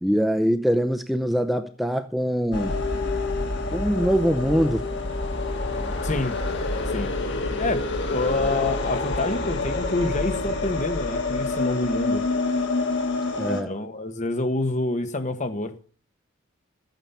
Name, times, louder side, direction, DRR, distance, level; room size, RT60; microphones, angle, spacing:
voice 1, 0.0-2.7 3.7-4.8 13.4-13.7, equal, ahead, 0.7 m, -23 dB
sound 1, 2.5-13.6, left 3 dB, 60° left, 2.1 m, -27 dB
voice 2, 6.0-6.4 6.9-7.1 7.6-12.2 13.4-15.7, left 2 dB, 35° left, 1.2 m, -27 dB
13.5 x 9.2 x 5.6 m
head